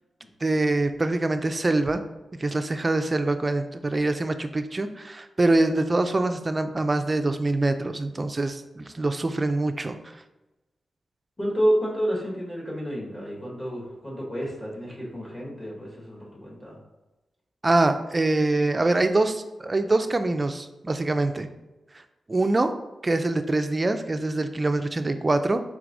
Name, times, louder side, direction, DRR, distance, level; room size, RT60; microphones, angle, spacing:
voice 1, 0.4-2.0 2.4-10.0 17.6-21.5 21.9-22.0 22.3-22.7 23.0-25.6, right 2 dB, 25° right, 8 dB, 0.3 m, -24 dB
voice 2, 11.4-16.8, equal, 20° left, -4 dB, 1.4 m, -29 dB
4.6 x 3.5 x 2.6 m, 1.0 s
wide cardioid pair, 100°, 0 cm